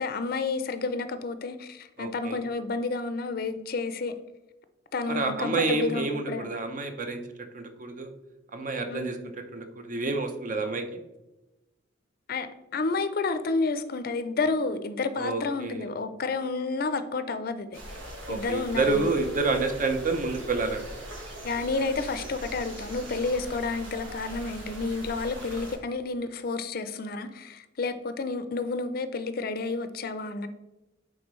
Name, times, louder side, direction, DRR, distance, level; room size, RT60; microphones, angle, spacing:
voice 1, 0.0-4.1 4.9-6.5 8.9-9.3 12.3-12.5 12.7-17.8 18.3-19.1 21.4-30.5, left 3 dB, 50° left, 0.5 m, -30 dB
voice 2, 2.0-2.4 5.1-7.2 7.5-8.1 8.5-9.2 9.5-10.8 15.2-15.9 18.3-20.8, right 3 dB, 40° right, 0.7 m, -28 dB
sound 1, 17.7-25.8, right 1 dB, 80° right, 1.5 m, -41 dB
8.6 x 3.7 x 3.1 m
head